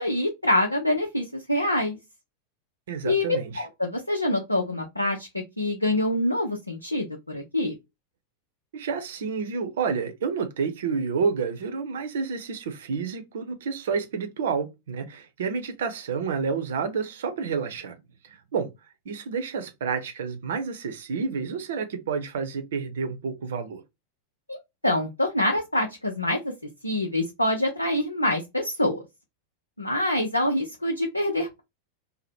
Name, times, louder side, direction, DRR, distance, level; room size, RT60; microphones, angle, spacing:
voice 1, 0.0-2.0 3.0-5.3 5.6-7.7 24.5-24.6 24.8-26.5 26.8-29.0 29.8-31.6, left 1 dB, 85° left, 0.5 m, -25 dB
voice 2, 2.9-3.6 8.7-18.0 18.2-18.7 19.0-23.8, right 5 dB, 60° right, 0.7 m, -29 dB
2.8 x 2.0 x 3.4 m
figure-of-eight pair, 90°, 0 cm